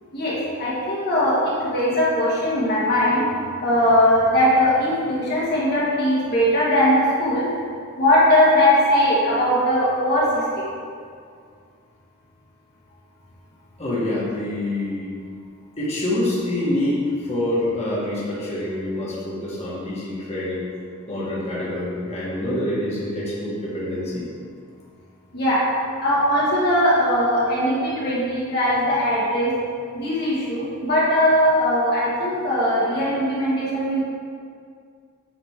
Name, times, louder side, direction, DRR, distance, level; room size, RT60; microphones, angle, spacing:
voice 1, 0.1-3.2 3.6-7.5 8.0-10.6 25.3-25.6 26.0-29.5 29.9-34.0, left 1 dB, 45° left, -8 dB, 1.5 m, -20 dB
voice 2, 13.8-15.1 15.8-17.0 17.3-20.6 21.1-24.2, left 1 dB, 30° left, -8 dB, 1.5 m, -26 dB
8.7 x 4.0 x 3.6 m, 2.2 s
head